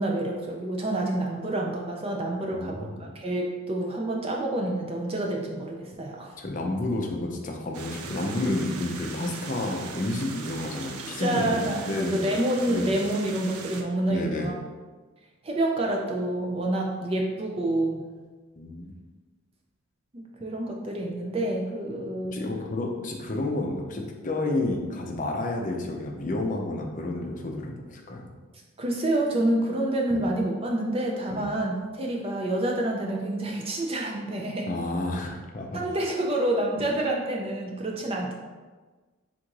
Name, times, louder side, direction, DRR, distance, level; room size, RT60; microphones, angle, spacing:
voice 1, 0.0-6.3 11.2-14.5 15.4-18.1 20.1-22.4 28.8-34.7 35.7-38.3, right 1 dB, 25° right, 0 dB, 0.4 m, -28 dB
voice 2, 2.5-3.0 6.4-12.2 12.7-12.9 14.1-14.5 18.6-18.9 22.3-28.3 30.1-30.3 31.3-31.5 34.7-35.8, left 2 dB, 35° left, 1 dB, 0.5 m, -30 dB
sound 1, 7.7-13.8, right 4 dB, 90° right, 0.5 m, -39 dB
3.6 x 2.5 x 4.6 m, 1.3 s
head